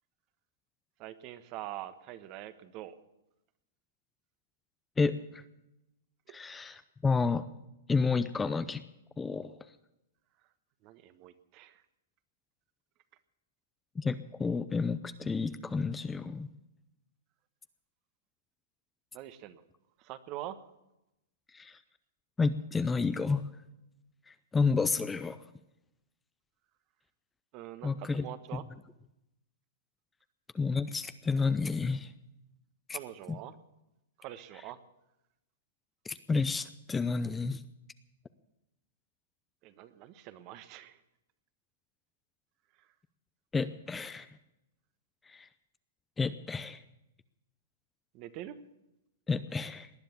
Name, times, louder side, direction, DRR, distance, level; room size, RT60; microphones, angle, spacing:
voice 1, 1.0-3.0 6.3-6.4 10.4-10.5 10.8-11.8 19.1-19.6 20.0-20.7 27.5-28.6 32.9-33.6 34.2-34.8 39.6-41.0 42.7-42.9 48.1-48.6, right 13 dB, 40° right, 12 dB, 1.2 m, -44 dB
voice 2, 5.0-5.4 6.3-7.5 7.9-8.8 9.2-9.6 14.0-16.5 21.5-21.8 22.4-23.5 24.3-25.4 27.8-28.3 28.5-28.6 30.5-32.1 32.9-33.0 36.0-37.6 43.5-44.4 45.3-45.5 46.2-46.8 49.3-49.9, left 4 dB, 10° left, 12 dB, 0.6 m, -30 dB
19.0 x 10.5 x 7.2 m, 0.90 s
hypercardioid pair, 135°, 0 cm